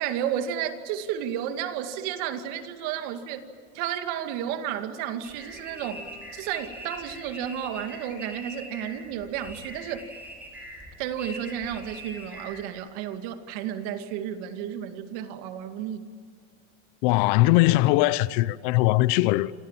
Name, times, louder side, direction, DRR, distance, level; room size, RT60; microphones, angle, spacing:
voice 1, 0.0-3.5 3.7-6.0 6.3-10.1 11.0-16.1, right 9 dB, 50° right, 2.3 m, -32 dB
sound 1, 5.2-12.6, equal, 5° right, 6.9 m, -43 dB
voice 2, 17.0-19.5, left 18 dB, 50° left, 0.7 m, -20 dB
28.0 x 27.0 x 7.5 m
supercardioid pair, 160°, 33 cm